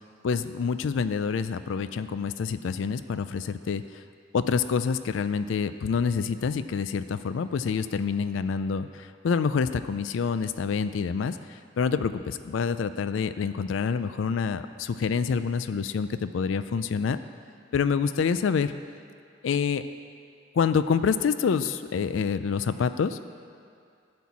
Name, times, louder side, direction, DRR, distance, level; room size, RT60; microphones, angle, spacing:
voice 1, 0.2-3.8 4.3-11.4 11.8-17.2 17.7-18.7 19.4-19.8 20.5-23.2, left 6 dB, 85° left, 12 dB, 0.4 m, -27 dB
12.0 x 4.4 x 8.4 m, 2.3 s
head